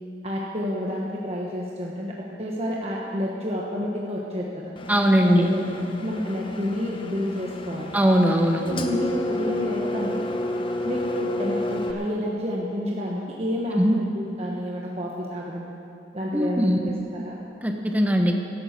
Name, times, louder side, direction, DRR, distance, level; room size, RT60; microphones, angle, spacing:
voice 1, 0.2-4.7 5.2-5.6 6.0-7.9 8.7-10.3 10.8-15.7 16.1-17.4, left 1 dB, 35° right, -3 dB, 1.3 m, -29 dB
Engine, 4.8-11.9, left 1 dB, 30° left, 0.9 m, -31 dB
voice 2, 4.9-5.5 7.9-8.6 13.7-14.0 16.3-16.9 17.6-18.3, equal, 10° right, 3 dB, 1.1 m, -20 dB
13.5 x 11.5 x 6.7 m, 2.7 s
head